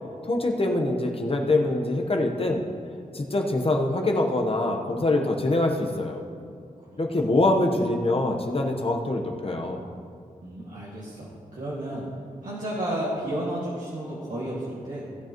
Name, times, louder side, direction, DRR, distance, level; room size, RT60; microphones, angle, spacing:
voice 1, 0.2-2.7 3.1-6.2 7.0-9.8, left 2 dB, 40° left, 2 dB, 1.0 m, -24 dB
voice 2, 6.9-7.3 10.4-12.1 12.4-15.1, right 1 dB, 70° right, -8 dB, 2.0 m, -32 dB
16.5 x 7.8 x 3.0 m, 2.2 s
wide cardioid pair, 70°, 14 cm